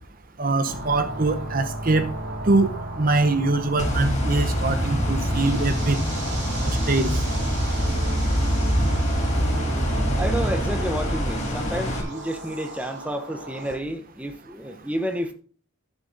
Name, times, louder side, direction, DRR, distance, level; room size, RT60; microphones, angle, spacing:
voice 1, 0.4-2.1 2.5-2.7 3.0-6.0 6.6-7.1, right 3 dB, 45° right, 0.9 m, -23 dB
sound 1, 0.6-13.8, right 1 dB, 60° right, 2.8 m, -34 dB
sound 2, 3.8-12.0, equal, 35° left, 2.8 m, -24 dB
voice 2, 10.2-15.3, right 1 dB, 5° right, 1.0 m, -30 dB
11.5 x 7.4 x 4.0 m
head